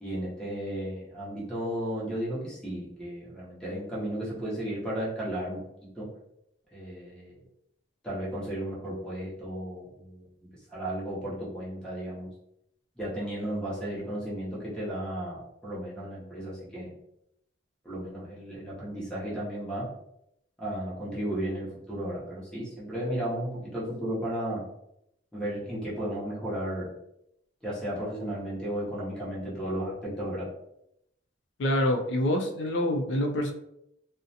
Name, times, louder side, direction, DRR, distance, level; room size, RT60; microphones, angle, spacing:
voice 1, 0.0-5.6 6.0-6.1 6.7-7.4 8.0-10.2 10.7-12.3 13.0-16.9 17.8-19.9 20.6-24.6 25.3-26.9 27.6-30.5, right 1 dB, 5° left, -7 dB, 0.8 m, -34 dB
voice 2, 31.6-33.5, left 1 dB, 70° left, 3 dB, 0.4 m, -26 dB
2.4 x 2.1 x 2.7 m, 0.79 s
head